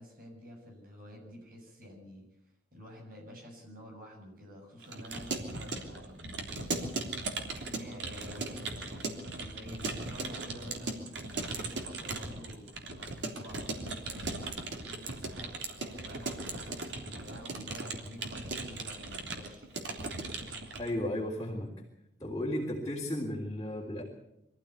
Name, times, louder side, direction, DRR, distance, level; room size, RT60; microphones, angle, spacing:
voice 1, 0.0-2.3 2.7-6.5 7.4-12.7 13.2-19.7, equal, 50° right, 1 dB, 7.4 m, -49 dB
Keyboard (musical) / Computer keyboard, 4.8-20.9, right 3 dB, 80° right, 3.4 m, -38 dB
voice 2, 20.8-21.7 22.2-24.0, left 1 dB, 20° left, -3 dB, 3.6 m, -34 dB
23.5 x 15.0 x 8.3 m, 0.83 s
head